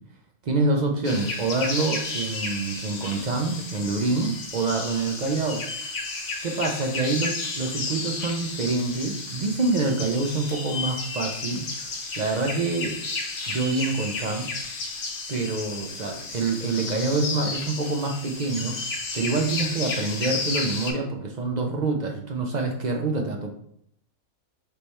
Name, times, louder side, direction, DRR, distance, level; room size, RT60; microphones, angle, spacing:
voice 1, 0.4-5.6 6.4-7.3 7.6-11.7 12.2-13.0 13.5-14.5 15.3-18.8 19.1-23.5, right 3 dB, 50° right, 3 dB, 0.5 m, -26 dB
sound 1, 1.0-20.9, left 3 dB, 70° left, 1.1 m, -33 dB
3.4 x 3.2 x 4.1 m, 0.69 s
omnidirectional pair, 1.3 m